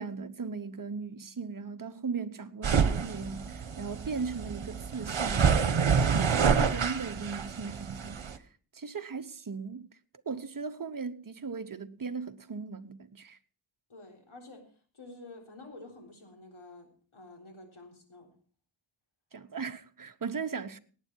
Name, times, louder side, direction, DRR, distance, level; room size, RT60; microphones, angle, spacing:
voice 1, 0.0-5.6 6.0-8.5 8.7-9.9 10.3-13.4 19.3-20.8, right 5 dB, 45° right, 1.0 m, -38 dB
sound 1, 2.6-8.4, right 6 dB, 70° right, 1.2 m, -28 dB
voice 2, 13.9-18.3, left 2 dB, 80° left, 3.8 m, -50 dB
18.5 x 9.3 x 4.6 m
wide cardioid pair, 85°, 48 cm